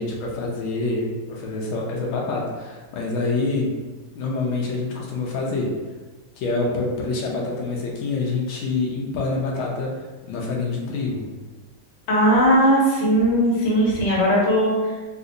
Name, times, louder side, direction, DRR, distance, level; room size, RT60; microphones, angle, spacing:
voice 1, 0.0-3.7 4.1-5.8 6.4-11.3, left 3 dB, 85° left, -2 dB, 1.4 m, -26 dB
voice 2, 12.1-14.7, equal, 45° left, -6 dB, 0.9 m, -18 dB
3.8 x 2.5 x 2.5 m, 1.3 s
omnidirectional pair, 2.3 m